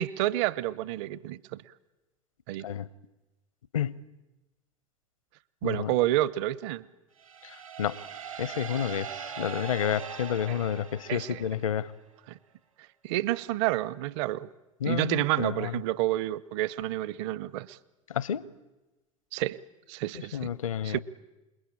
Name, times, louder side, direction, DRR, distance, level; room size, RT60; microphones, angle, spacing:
voice 1, 0.0-1.6 2.5-2.7 5.6-6.8 10.5-10.6 11.1-11.4 12.3-12.4 13.0-14.5 14.8-17.8 19.3-19.6 19.9-20.5 20.8-21.0, right 15 dB, 60° right, 1.0 m, -29 dB
sound 1, 7.2-11.9, right 7 dB, 85° right, 3.2 m, -41 dB
voice 2, 7.4-8.0 8.4-11.9 14.8-15.8 18.1-18.5 20.3-21.0, left 9 dB, 80° left, 1.0 m, -30 dB
28.0 x 21.5 x 8.8 m
figure-of-eight pair, 75°, 17 cm